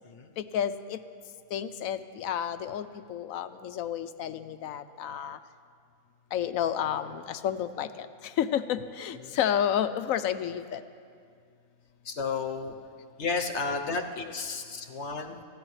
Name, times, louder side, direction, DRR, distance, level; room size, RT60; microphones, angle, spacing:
voice 1, 0.4-1.0 1.5-5.4 6.3-8.1 8.4-10.8, left 9 dB, 75° left, 11 dB, 1.0 m, -30 dB
voice 2, 12.0-12.7 13.2-15.4, left 4 dB, 55° left, 5 dB, 1.2 m, -32 dB
28.5 x 15.0 x 3.2 m, 2.2 s
omnidirectional pair, 1.4 m